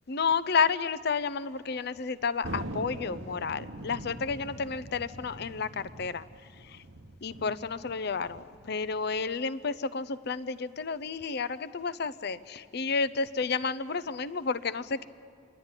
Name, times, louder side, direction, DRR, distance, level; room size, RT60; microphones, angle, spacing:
voice 1, 0.1-6.2 7.2-15.1, left 5 dB, 55° left, 15 dB, 0.6 m, -31 dB
Thunder, 2.4-9.3, right 1 dB, 80° right, 1.1 m, -43 dB
28.0 x 12.0 x 9.8 m, 2.2 s
head